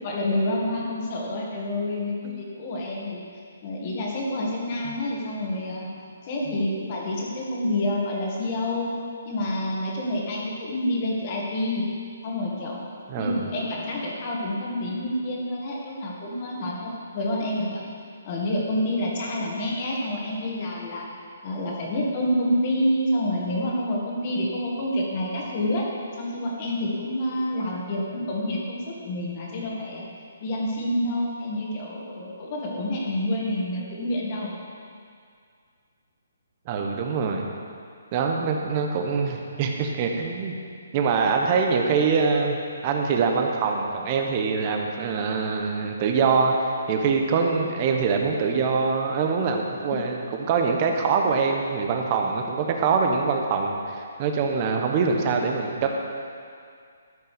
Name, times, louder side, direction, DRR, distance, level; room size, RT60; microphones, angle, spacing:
voice 1, 0.0-3.2 3.6-5.9 6.2-8.9 9.3-11.8 12.2-12.8 13.2-17.8 18.3-21.1 21.4-25.9 26.2-30.0 30.4-34.5, left 1 dB, 35° left, -3 dB, 2.0 m, -28 dB
voice 2, 13.1-13.4 36.7-37.5 38.1-40.6 40.9-42.6 42.8-46.5 46.9-55.9, right 5 dB, 30° right, 2 dB, 1.0 m, -24 dB
13.0 x 5.7 x 5.1 m, 2.2 s
hypercardioid pair, 160°, 0 cm